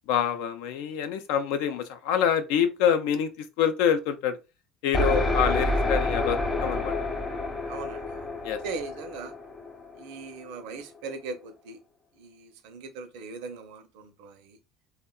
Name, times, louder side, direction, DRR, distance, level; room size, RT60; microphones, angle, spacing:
voice 1, 0.1-4.4 4.8-6.9 8.4-8.6, left 8 dB, 70° left, 0.4 m, -26 dB
sound 1, 4.9-10.5, left 2 dB, 25° left, 0.9 m, -28 dB
voice 2, 7.7-9.3 10.0-11.8 12.2-14.6, right 4 dB, 70° right, 0.5 m, -40 dB
2.9 x 2.0 x 2.3 m
hypercardioid pair, 70°, 0 cm